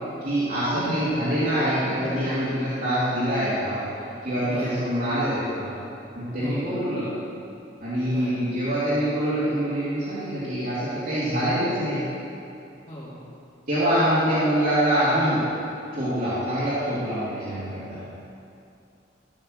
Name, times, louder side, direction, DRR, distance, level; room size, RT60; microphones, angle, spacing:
voice 1, 0.2-3.8 4.2-5.7 6.1-7.1 7.8-12.1 13.7-15.5 15.9-18.0, equal, 50° right, -12 dB, 2.9 m, -25 dB
voice 2, 0.7-1.1 4.4-4.8 6.4-6.7 8.0-8.4 12.9-13.2 18.1-18.2, equal, 35° left, -13 dB, 3.1 m, -36 dB
14.5 x 6.6 x 6.5 m, 2.6 s
head